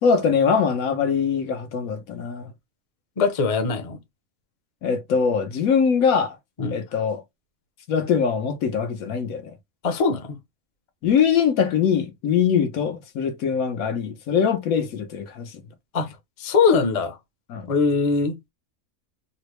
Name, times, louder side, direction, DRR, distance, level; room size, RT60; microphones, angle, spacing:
voice 1, 0.0-2.5 4.8-6.4 6.7-7.2 7.9-9.5 11.0-15.6 17.5-17.7, left 6 dB, 85° left, 1.2 m, -22 dB
voice 2, 3.2-4.0 6.6-6.8 9.8-10.4 15.9-17.2 17.7-18.4, left 5 dB, 35° left, 0.6 m, -22 dB
3.8 x 2.1 x 3.0 m
omnidirectional pair, 1.5 m